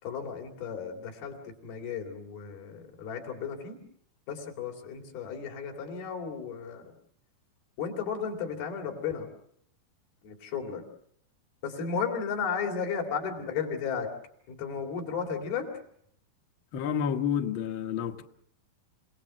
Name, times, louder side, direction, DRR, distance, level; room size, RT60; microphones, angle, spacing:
voice 1, 0.0-3.8 4.3-6.9 7.8-9.3 10.2-10.8 11.6-14.1 14.5-15.7, left 6 dB, 90° left, 5.0 m, -34 dB
voice 2, 16.7-18.2, left 8 dB, 65° left, 1.2 m, -29 dB
28.5 x 18.0 x 7.6 m
omnidirectional pair, 4.2 m